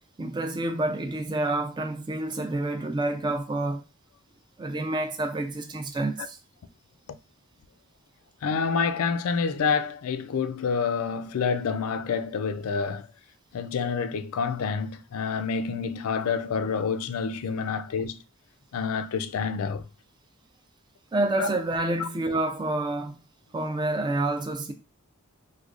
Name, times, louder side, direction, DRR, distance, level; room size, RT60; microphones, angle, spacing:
voice 1, 0.2-3.8 4.6-6.4 21.1-23.2 23.5-24.7, right 2 dB, 20° right, 0.4 m, -28 dB
voice 2, 8.4-13.1 13.5-18.2 18.7-19.8 21.4-21.5, left 5 dB, 70° left, 0.4 m, -28 dB
4.7 x 2.2 x 2.4 m
head